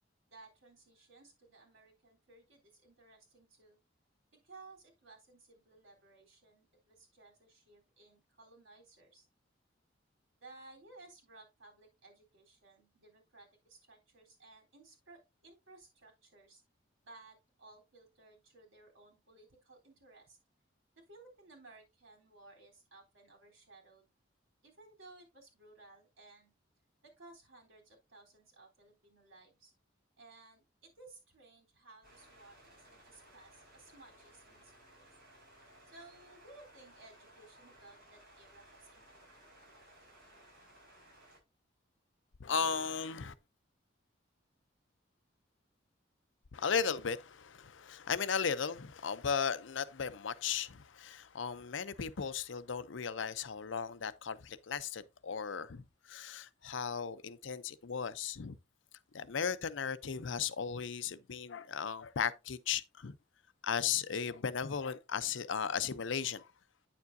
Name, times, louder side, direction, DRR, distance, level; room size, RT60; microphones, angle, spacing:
voice 1, 0.3-3.8 4.3-9.3 10.4-16.6 17.0-20.4 21.1-24.1 24.6-26.5 27.0-29.7 30.2-35.1 35.9-39.3, right 2 dB, 85° right, 3.6 m, -58 dB
sound 1, 32.0-41.4, right 1 dB, 50° right, 5.2 m, -60 dB
voice 2, 42.4-43.3 46.5-58.6 59.1-63.2 63.6-66.5, left 6 dB, 75° left, 0.6 m, -36 dB
9.4 x 7.1 x 2.6 m
head